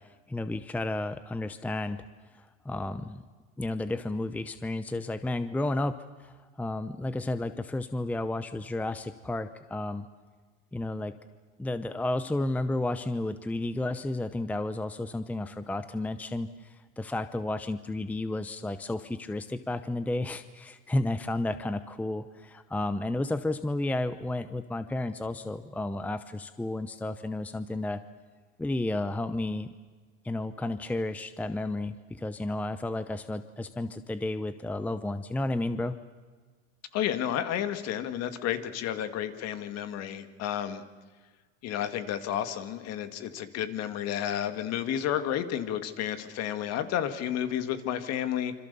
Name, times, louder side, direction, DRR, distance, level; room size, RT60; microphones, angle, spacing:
voice 1, 0.0-2.0 2.3-3.2 3.6-10.1 10.7-11.2 11.6-28.0 28.6-29.7 30.2-36.0, left 2 dB, 5° left, 12 dB, 0.8 m, -32 dB
voice 2, 36.9-40.8 41.6-48.5, left 10 dB, 45° left, 10 dB, 2.3 m, -31 dB
26.5 x 26.0 x 7.0 m, 1.4 s
supercardioid pair, 130°, 34 cm